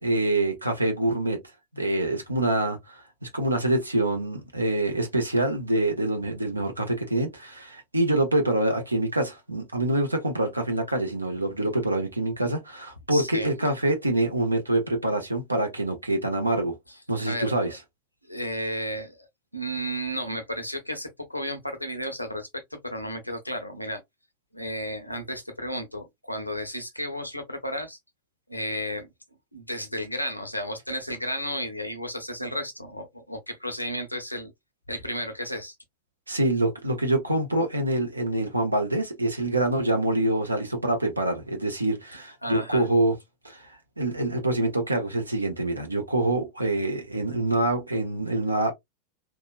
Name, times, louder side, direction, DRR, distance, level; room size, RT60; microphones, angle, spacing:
voice 1, 0.0-1.4 1.7-16.8 17.1-17.8 36.3-43.1 43.4-43.6 44.0-48.7, right 1 dB, 80° right, 0.8 m, -25 dB
voice 2, 13.1-13.5 16.9-17.7 18.3-19.3 19.5-24.0 24.5-28.0 28.5-29.1 29.5-34.5 34.9-35.7 42.4-42.9, equal, 90° left, 0.7 m, -33 dB
2.9 x 2.3 x 2.4 m
figure-of-eight pair, 90°, 0 cm